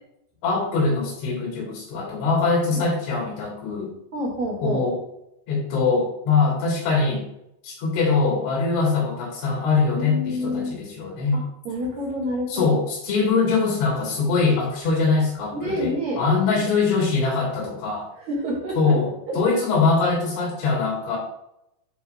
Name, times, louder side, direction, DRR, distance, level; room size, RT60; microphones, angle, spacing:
voice 1, 0.4-3.9 4.6-5.0 5.5-7.3 7.6-11.4 12.5-18.1 18.8-21.2, left 4 dB, 90° left, -3 dB, 5.1 m, -22 dB
voice 2, 4.1-4.8 9.9-10.8 11.3-12.6 15.5-16.2 18.2-18.9 19.3-19.4, equal, 45° right, -7 dB, 3.1 m, -28 dB
10.5 x 4.1 x 3.5 m, 0.81 s
omnidirectional pair, 5.3 m